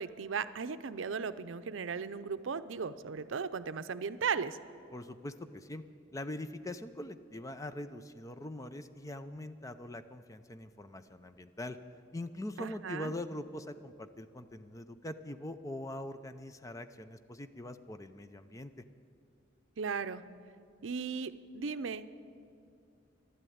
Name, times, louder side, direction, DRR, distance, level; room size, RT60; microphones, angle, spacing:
voice 1, 0.0-4.6 12.6-13.1 19.8-20.2 20.8-22.2, right 5 dB, 80° right, 13 dB, 0.5 m, -36 dB
voice 2, 4.9-5.8 6.1-11.8 12.1-18.7, left 1 dB, 15° left, 10 dB, 0.5 m, -42 dB
12.5 x 11.0 x 9.3 m, 2.4 s
head